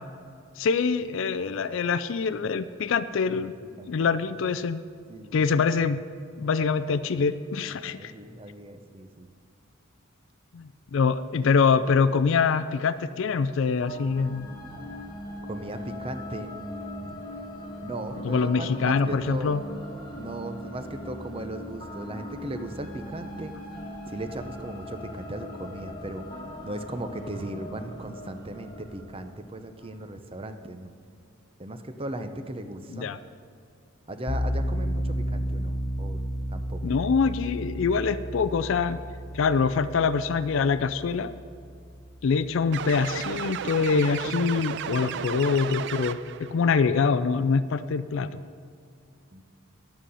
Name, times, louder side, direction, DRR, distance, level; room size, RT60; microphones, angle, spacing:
voice 1, 0.6-3.5 3.9-4.8 5.3-6.0 6.4-8.1 10.5-14.5 18.2-19.6 32.9-33.2 36.8-39.0 39.3-41.3 42.2-48.4, left 5 dB, 60° left, 12 dB, 0.4 m, -24 dB
voice 2, 3.4-3.9 5.1-5.5 7.9-9.3 15.5-17.1 17.8-19.5 20.2-23.5 24.1-26.3 26.6-30.9 31.6-33.1 34.1-36.8 49.3-49.4, right 1 dB, 25° right, 8 dB, 0.7 m, -37 dB
sound 1, 13.8-30.0, left 1 dB, 20° left, 1.4 m, -40 dB
sound 2, 34.3-43.1, equal, 80° left, 1.0 m, -33 dB
sound 3, 42.7-46.5, right 8 dB, 55° right, 0.4 m, -33 dB
11.5 x 9.0 x 5.5 m, 2.4 s
head